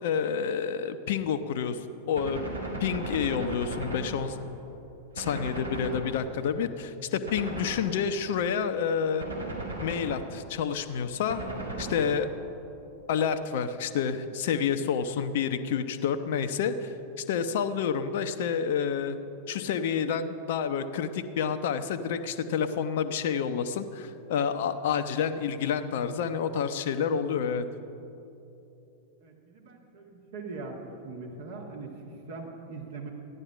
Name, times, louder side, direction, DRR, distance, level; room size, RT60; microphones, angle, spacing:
voice 1, 0.0-2.4 2.8-4.4 5.2-9.3 9.8-11.4 11.8-12.3 13.1-19.2 19.5-27.7, left 7 dB, 55° left, 10 dB, 0.7 m, -29 dB
Gunshot gunfire, 2.2-4.7 5.2-6.6 7.3-8.3 9.2-10.6 11.3-12.5, right 1 dB, 80° right, 2.2 m, -37 dB
voice 2, 29.2-33.1, right 3 dB, 55° right, 0 dB, 1.8 m, -41 dB
14.5 x 10.5 x 5.6 m, 2.9 s
figure-of-eight pair, 90°, 0 cm